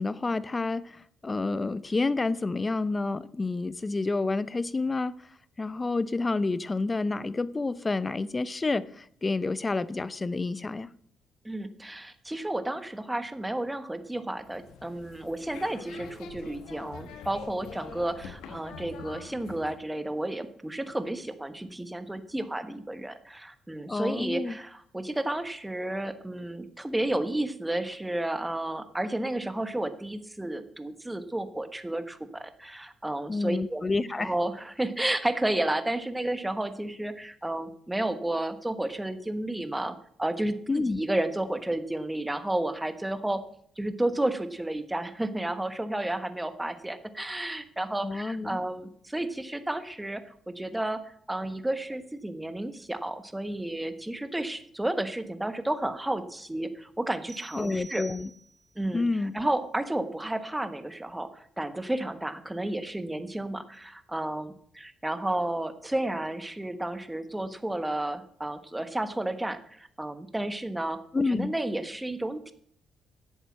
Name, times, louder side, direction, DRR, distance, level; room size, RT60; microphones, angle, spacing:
voice 1, 0.0-5.1 5.6-10.9 23.9-24.6 33.3-34.3 40.7-41.0 48.0-48.6 57.5-58.3 58.9-59.3 71.1-71.5, left 3 dB, 25° left, 17 dB, 0.7 m, -29 dB
voice 2, 11.4-33.8 34.2-43.4 43.8-58.0 58.7-72.5, right 1 dB, 10° right, 10 dB, 1.3 m, -32 dB
sound 1, 14.3-19.8, left 6 dB, 90° left, 1.3 m, -45 dB
sound 2, 57.3-58.8, right 4 dB, 35° right, 1.1 m, -48 dB
11.5 x 8.0 x 7.4 m, 0.64 s
cardioid pair, 90°, 0 cm